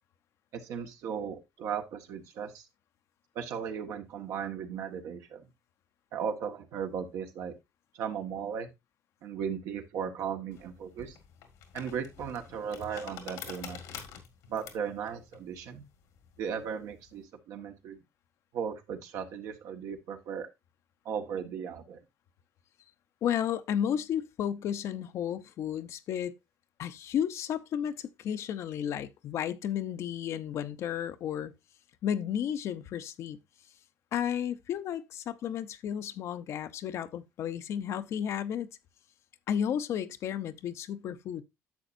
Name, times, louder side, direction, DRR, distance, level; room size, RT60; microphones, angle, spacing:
voice 1, 0.5-2.6 3.3-5.5 6.1-7.5 7.9-8.7 9.2-11.2 11.7-13.8 14.5-15.8 16.4-18.0 18.5-20.5 21.0-22.0, right 7 dB, 75° right, 1.6 m, -36 dB
sound 1, 10.5-17.2, left 8 dB, 85° left, 1.9 m, -47 dB
voice 2, 23.2-26.3 26.8-31.5 32.0-33.4 34.1-38.7 39.5-41.4, left 9 dB, 65° left, 0.7 m, -33 dB
10.5 x 7.0 x 2.6 m
cardioid pair, 105°, 5 cm